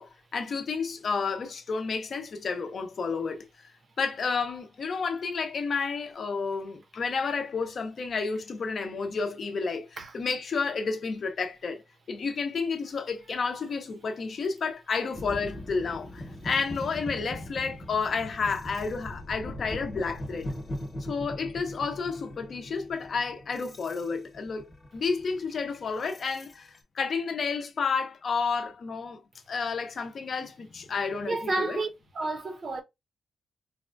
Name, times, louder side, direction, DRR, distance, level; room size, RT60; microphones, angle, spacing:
voice 1, 0.0-3.5 4.0-9.9 10.1-11.8 12.1-20.5 21.1-29.2 29.5-31.8, left 5 dB, 45° left, 0.6 m, -31 dB
sound 1, 15.1-26.8, left 1 dB, 20° left, 1.0 m, -40 dB
voice 2, 31.3-32.8, right 3 dB, 40° right, 0.7 m, -31 dB
4.1 x 2.2 x 2.5 m
wide cardioid pair, 135°, 0 cm